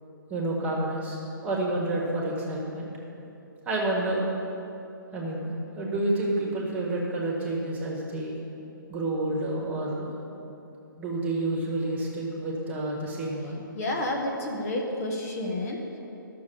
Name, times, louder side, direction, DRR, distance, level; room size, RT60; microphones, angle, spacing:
voice 1, 0.3-2.9 3.6-4.2 5.1-8.4 8.9-10.1 11.0-13.6, right 2 dB, 15° right, -3 dB, 1.7 m, -29 dB
voice 2, 13.7-16.0, left 1 dB, 45° left, 0 dB, 1.6 m, -30 dB
12.5 x 6.9 x 7.0 m, 2.8 s
hypercardioid pair, 150°, 12 cm